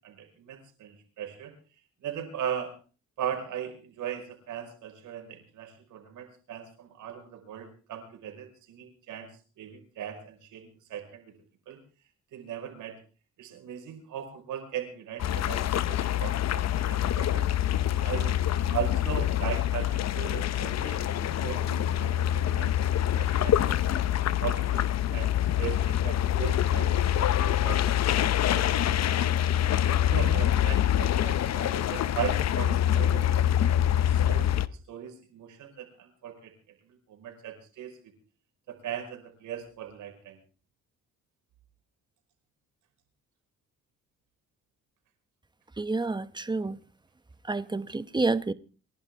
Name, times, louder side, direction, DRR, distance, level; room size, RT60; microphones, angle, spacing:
voice 1, 0.0-1.5 2.0-2.7 3.2-9.3 9.6-11.3 11.7-11.8 12.3-12.9 13.4-17.5 18.0-18.3 18.7-23.8 24.4-24.8 25.1-29.2 30.0-36.5 36.9-37.9 38.7-40.4, right 9 dB, 85° right, 5.3 m, -38 dB
sound 1, 15.2-34.7, left 11 dB, 60° left, 0.8 m, -25 dB
voice 2, 45.8-46.8 47.5-48.5, right 3 dB, 15° right, 1.0 m, -29 dB
28.0 x 11.5 x 3.7 m
cardioid pair, 90°, 30 cm